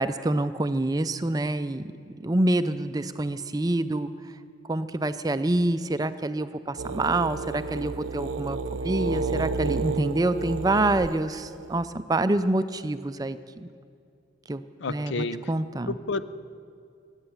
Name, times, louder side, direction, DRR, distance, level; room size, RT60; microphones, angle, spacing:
voice 1, 0.0-1.9 2.2-4.1 4.7-13.7 14.5-14.6 14.9-15.9, right 2 dB, 20° right, 12 dB, 0.4 m, -26 dB
sound 1, 6.8-11.9, right 4 dB, 85° right, 0.5 m, -31 dB
voice 2, 14.8-15.4 15.9-16.2, left 3 dB, 75° left, 13 dB, 0.6 m, -30 dB
22.5 x 9.0 x 7.0 m, 2.4 s
head